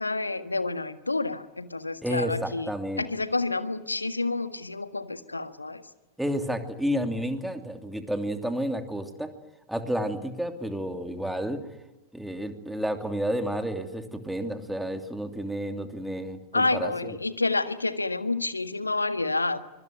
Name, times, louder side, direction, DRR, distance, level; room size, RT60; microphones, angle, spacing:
voice 1, 0.0-2.7 3.0-5.8 16.5-19.6, left 3 dB, 80° left, 11 dB, 1.6 m, -29 dB
voice 2, 2.0-3.1 6.2-9.3 9.7-11.6 12.1-17.2, equal, 5° right, 6 dB, 2.8 m, -31 dB
25.0 x 22.5 x 9.3 m, 1.0 s
figure-of-eight pair, 90°, 0 cm